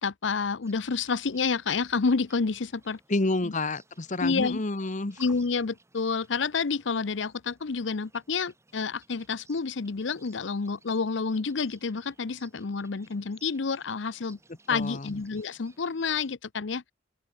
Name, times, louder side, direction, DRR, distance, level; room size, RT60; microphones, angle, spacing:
voice 1, 0.0-3.0 3.4-3.5 4.2-4.6 5.2-14.4 14.7-16.9, left 4 dB, 70° left, 0.7 m, -29 dB
sound 1, 0.6-16.3, right 3 dB, 15° right, 5.5 m, -60 dB
voice 2, 3.1-5.2 14.7-15.2, left 2 dB, 40° left, 1.2 m, -29 dB
open air
head